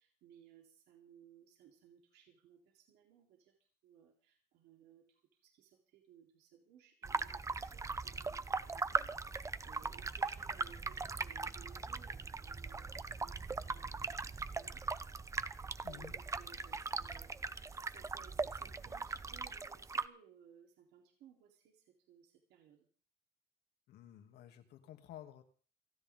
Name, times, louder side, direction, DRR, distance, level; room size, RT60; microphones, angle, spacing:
voice 1, 0.0-14.8 15.8-22.9, right 9 dB, 85° right, 0 dB, 3.9 m, -63 dB
sound 1, 7.0-20.1, right 4 dB, 20° right, 0.7 m, -40 dB
voice 2, 23.9-25.4, left 11 dB, 75° left, 5 dB, 2.8 m, -53 dB
29.0 x 10.0 x 3.8 m, 0.41 s
cardioid pair, 110°, 17 cm